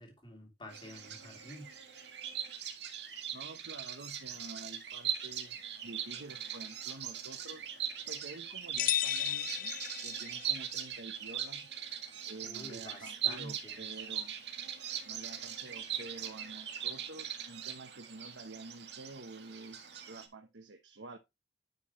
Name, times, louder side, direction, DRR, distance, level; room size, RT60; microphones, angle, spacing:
voice 1, 0.0-1.7 12.4-13.9, left 1 dB, 25° left, 3.2 m, -49 dB
Bird vocalization bird call bird song, 0.7-20.3, right 9 dB, 65° right, 2.0 m, -40 dB
voice 2, 3.3-7.7 8.1-9.8 10.0-11.7 12.3-14.3 15.0-21.2, right 2 dB, 85° right, 1.0 m, -49 dB
sound 1, 8.8-10.6, left 12 dB, 50° left, 0.4 m, -34 dB
10.5 x 5.8 x 3.1 m
head